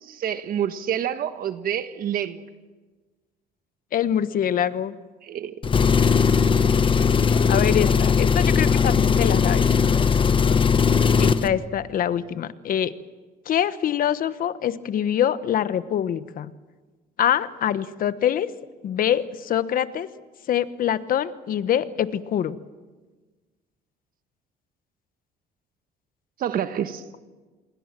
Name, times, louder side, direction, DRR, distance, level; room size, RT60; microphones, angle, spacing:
voice 1, 0.0-2.4 5.2-5.5 26.4-27.0, right 9 dB, 60° right, 10 dB, 1.3 m, -28 dB
voice 2, 3.9-4.9 7.5-9.6 11.1-12.9 13.5-16.5 17.2-18.5 18.8-20.1 20.5-22.6, left 10 dB, 55° left, 14 dB, 1.2 m, -24 dB
Engine, 5.6-11.5, left 6 dB, 30° left, 1.1 m, -19 dB
27.5 x 22.0 x 7.5 m, 1.3 s
cardioid pair, 110°, 17 cm